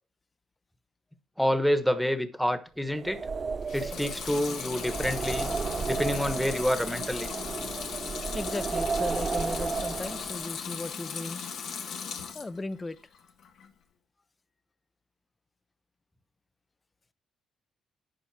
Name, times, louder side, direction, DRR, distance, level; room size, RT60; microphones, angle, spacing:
voice 1, 1.4-3.2 3.7-5.5 5.9-7.3, equal, ahead, 1.2 m, -28 dB
sound 1, 2.9-10.5, right 5 dB, 40° right, 0.4 m, -33 dB
Water tap faucet / Sink (filling or washing) / Liquid, 3.6-12.6 13.0-13.7, left 6 dB, 70° left, 1.5 m, -37 dB
voice 2, 8.3-11.4 12.3-13.0, left 2 dB, 25° left, 0.6 m, -36 dB
10.5 x 5.2 x 4.8 m
cardioid pair, 90°, 0 cm